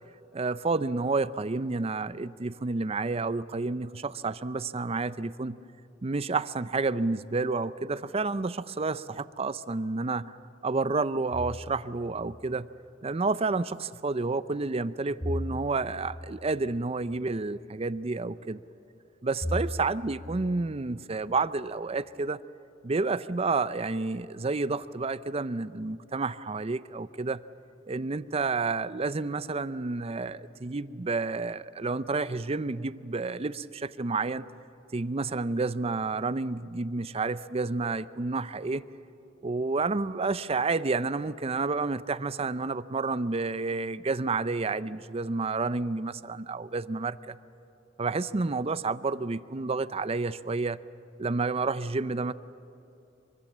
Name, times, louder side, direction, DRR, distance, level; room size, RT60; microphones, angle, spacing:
voice 1, 0.3-5.6 6.0-10.4 10.6-12.7 13.0-18.6 19.2-22.4 22.8-27.4 27.9-34.5 34.9-38.9 39.4-47.4 48.0-50.8 51.2-52.3, right 3 dB, 35° right, 15 dB, 0.6 m, -30 dB
sound 1, 11.3-12.1 15.2-16.3 19.4-20.3, left 1 dB, 30° left, 6.2 m, -35 dB
24.5 x 24.0 x 7.4 m, 2.8 s
head